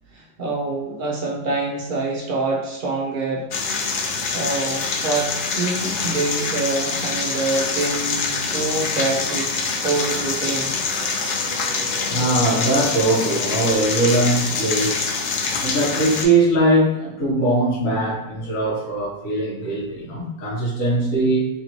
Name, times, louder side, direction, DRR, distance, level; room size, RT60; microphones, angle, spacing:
voice 1, 0.1-3.5 4.3-9.5 9.8-10.7, right 3 dB, 60° right, -2 dB, 0.5 m, -25 dB
sound 1, 3.5-16.2, left 4 dB, 65° left, 0.5 m, -25 dB
sound 2, 5.5-13.8, left 2 dB, 20° left, 1.0 m, -39 dB
voice 2, 12.1-15.1 15.6-21.5, right 2 dB, 85° left, -7 dB, 1.4 m, -21 dB
3.2 x 2.6 x 2.9 m, 0.98 s
omnidirectional pair, 1.4 m